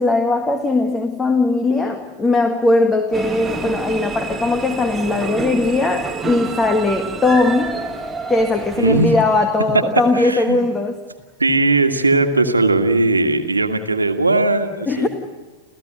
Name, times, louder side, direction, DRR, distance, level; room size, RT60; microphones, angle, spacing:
voice 1, 0.0-7.8 8.3-11.0 14.9-15.1, left 2 dB, 15° left, 6 dB, 1.7 m, -19 dB
sound 1, 3.1-9.4, right 4 dB, 10° right, 1.6 m, -28 dB
voice 2, 8.8-9.2 10.1-10.6 11.4-15.1, right 2 dB, 80° right, 6 dB, 1.7 m, -18 dB
29.0 x 15.0 x 7.8 m, 1.4 s
figure-of-eight pair, 90°, 0 cm